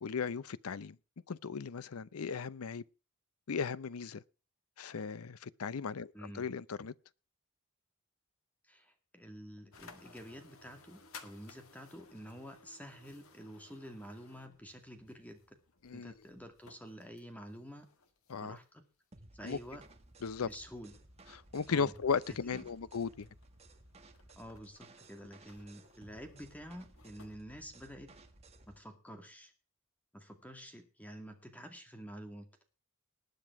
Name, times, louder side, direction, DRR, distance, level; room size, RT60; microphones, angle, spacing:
voice 1, 0.0-1.0 1.3-2.8 3.5-4.2 4.8-6.9 15.8-16.1 18.3-18.6 19.4-19.6 20.2-20.5 21.3-23.3, left 5 dB, 90° left, 0.6 m, -36 dB
voice 2, 6.1-6.5 8.6-15.6 15.9-17.9 18.4-18.8 19.3-19.8 20.4-20.9 21.7-21.9 22.3-22.7 24.4-28.1 28.7-29.5 30.1-32.6, equal, 5° left, 2.1 m, -49 dB
sound 1, 9.7-18.9 19.6-27.4, left 4 dB, 75° left, 1.7 m, -60 dB
sound 2, 19.1-28.8, right 2 dB, 30° right, 1.5 m, -58 dB
19.5 x 7.6 x 4.7 m
head